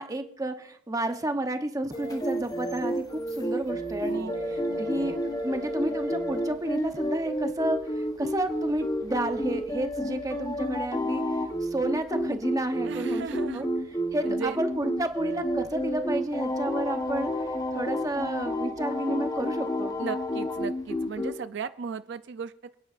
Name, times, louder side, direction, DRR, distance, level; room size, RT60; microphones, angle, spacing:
voice 1, 0.0-3.0 3.3-11.2 11.6-13.3 13.5-13.7 14.1-17.3 17.7-19.9, right 1 dB, 15° right, 6 dB, 0.8 m, -31 dB
sound 1, 1.9-21.3, equal, 20° left, 0.9 m, -30 dB
voice 2, 4.1-5.2 12.8-13.7 14.2-14.6 20.0-22.8, right 6 dB, 60° right, 12 dB, 0.4 m, -37 dB
27.0 x 9.9 x 2.5 m, 0.71 s
head